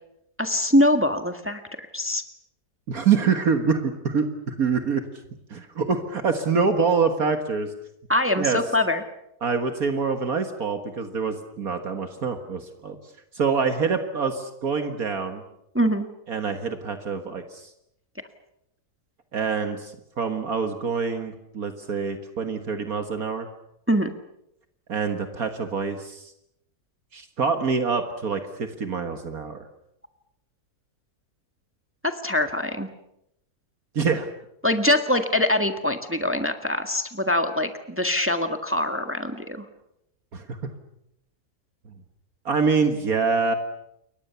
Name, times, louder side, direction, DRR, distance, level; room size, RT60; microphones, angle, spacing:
voice 1, 0.4-1.6 1.9-2.2 8.1-9.0 15.7-16.1 23.9-24.1 32.0-32.9 34.6-39.6, left 1 dB, 10° right, 7 dB, 1.6 m, -23 dB
voice 2, 2.9-5.0 5.5-7.7 8.4-8.6 9.4-13.0 13.3-15.4 16.3-17.7 19.3-23.5 24.9-26.3 27.1-29.6 33.9-34.3 40.3-40.6 42.5-43.5, right 5 dB, 65° right, 7 dB, 2.0 m, -25 dB
29.0 x 23.0 x 7.0 m, 0.80 s
omnidirectional pair, 1.7 m